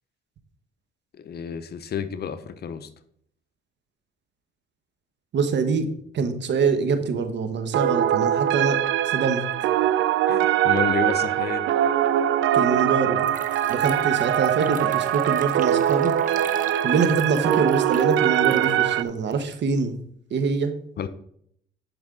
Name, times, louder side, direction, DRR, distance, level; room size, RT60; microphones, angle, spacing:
voice 1, 1.2-2.9 10.3-11.6 21.0-21.1, left 7 dB, 55° left, 12 dB, 0.8 m, -30 dB
voice 2, 5.3-5.9 6.1-8.8 9.1-9.4 12.5-13.3 13.7-16.1 16.8-19.9 20.3-20.7, right 5 dB, 65° right, 9 dB, 1.2 m, -24 dB
sound 1, 7.7-19.0, right 11 dB, 80° right, 0.5 m, -22 dB
sound 2, 12.6-12.7 13.2-19.5, right 6 dB, 40° right, 0.9 m, -37 dB
10.5 x 5.4 x 3.7 m, 0.69 s
cardioid pair, 90°, 20 cm